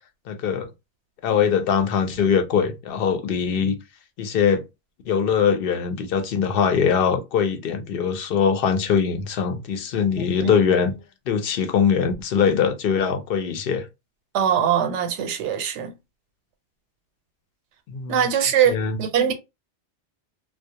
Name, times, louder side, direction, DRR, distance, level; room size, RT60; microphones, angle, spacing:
voice 1, 0.3-0.7 1.2-3.7 4.2-4.6 5.1-11.0 11.3-13.9 17.9-18.3 18.7-19.0, left 7 dB, 60° left, 0.7 m, -22 dB
voice 2, 14.3-15.9 18.1-19.3, right 8 dB, 90° right, 0.9 m, -22 dB
2.3 x 2.0 x 2.7 m
omnidirectional pair, 1.2 m